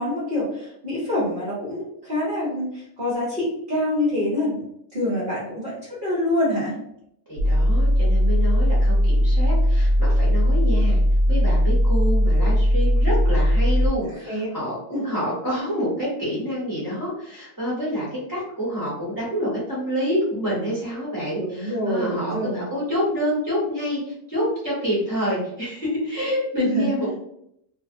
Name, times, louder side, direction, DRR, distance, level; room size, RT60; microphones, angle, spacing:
voice 1, 0.0-4.6 4.9-6.8 14.0-14.5 14.9-15.0 21.4-22.6 26.6-26.9, left 1 dB, 45° right, -8 dB, 0.8 m, -26 dB
voice 2, 7.3-11.0 11.3-27.1, equal, 15° left, -8 dB, 0.9 m, -27 dB
sound 1, 7.4-13.9, equal, 70° right, 0.9 m, -18 dB
2.6 x 2.0 x 2.5 m, 0.74 s
omnidirectional pair, 1.6 m